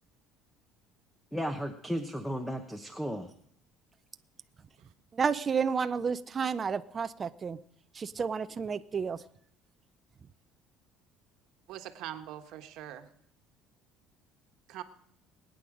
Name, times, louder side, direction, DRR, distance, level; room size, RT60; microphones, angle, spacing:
voice 1, 1.3-3.3, equal, 5° left, 1.0 m, -34 dB
voice 2, 5.1-7.6 7.9-9.2, right 6 dB, 25° right, 0.5 m, -31 dB
voice 3, 11.7-13.1 14.7-14.8, right 12 dB, 70° right, 1.3 m, -42 dB
21.0 x 9.3 x 5.0 m
cardioid pair, 130°, 0 cm